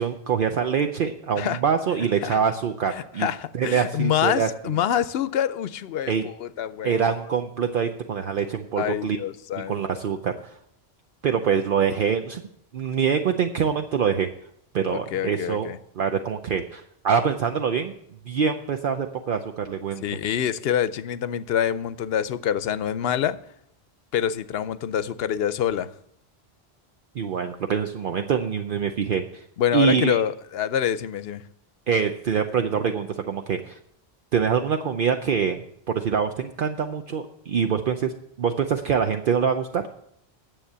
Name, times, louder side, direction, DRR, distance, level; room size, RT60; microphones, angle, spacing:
voice 1, 0.0-3.3 3.5-4.5 6.1-6.3 6.8-9.2 9.7-10.3 11.2-12.4 12.7-14.3 14.7-15.7 16.0-17.9 18.3-20.0 27.2-29.4 29.7-30.2 31.9-33.8 34.3-35.6 35.9-38.1 38.4-39.8, right 7 dB, 60° right, 0.8 m, -24 dB
voice 2, 2.9-7.1 8.8-9.8 14.9-15.8 20.0-23.4 24.1-25.9 29.6-31.4, left 9 dB, 70° left, 0.8 m, -26 dB
10.0 x 7.3 x 6.6 m
omnidirectional pair, 1.1 m